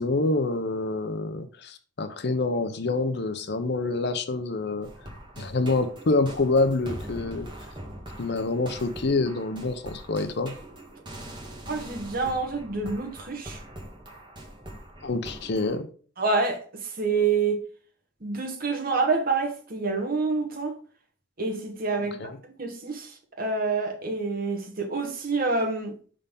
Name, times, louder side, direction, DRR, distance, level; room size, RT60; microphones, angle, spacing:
voice 1, 0.0-4.9 5.4-7.5 8.2-10.5 15.0-15.9 22.0-22.4, left 3 dB, 60° left, 0.7 m, -27 dB
sound 1, 4.8-15.8, right 1 dB, 25° right, 1.5 m, -42 dB
voice 2, 11.7-13.6 16.2-17.6 18.2-20.7 21.4-22.2 22.6-25.9, right 4 dB, 50° right, 1.3 m, -27 dB
5.4 x 3.8 x 5.3 m
head